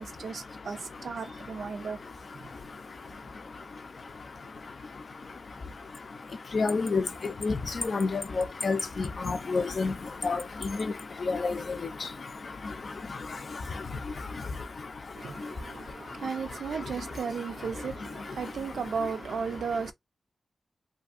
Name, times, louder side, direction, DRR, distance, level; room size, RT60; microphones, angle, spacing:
voice 1, 0.0-2.0 15.2-19.9, right 5 dB, 85° right, 0.4 m, -35 dB
voice 2, 6.5-7.0 7.4-7.6 7.8-9.9 10.2-10.4 11.3-11.6, left 4 dB, 60° left, 0.4 m, -28 dB
2.6 x 2.6 x 2.4 m
cardioid pair, 70°, 0 cm